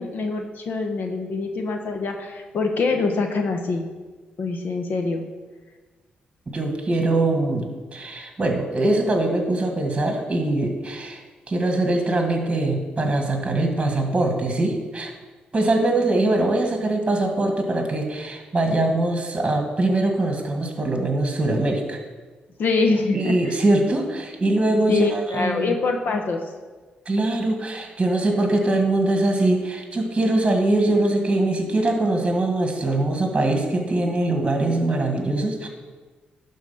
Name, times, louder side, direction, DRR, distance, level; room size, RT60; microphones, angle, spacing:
voice 1, 0.0-3.9 4.4-5.2 22.6-23.5 24.9-26.4, left 3 dB, 65° left, 5 dB, 0.9 m, -24 dB
voice 2, 6.5-11.2 11.5-15.1 15.5-22.0 23.1-25.8 27.0-35.7, right 2 dB, 25° right, 3 dB, 1.6 m, -22 dB
11.5 x 4.0 x 5.6 m, 1.3 s
supercardioid pair, 60°, 3 cm